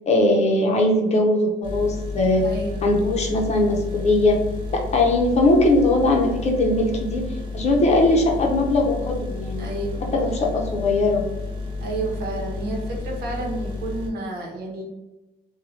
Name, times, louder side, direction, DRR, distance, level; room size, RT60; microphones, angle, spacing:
voice 1, 0.1-2.4 2.8-4.4 4.7-7.2 7.5-9.7 10.1-11.2, left 2 dB, 40° left, 0 dB, 0.7 m, -20 dB
sound 1, 1.6-14.1, left 3 dB, 30° right, 0.9 m, -32 dB
voice 2, 2.4-2.9 8.1-8.3 9.6-10.1 11.8-14.8, right 2 dB, 70° right, -1 dB, 0.9 m, -30 dB
3.0 x 2.3 x 2.7 m, 1.0 s
cardioid pair, 110°, 17 cm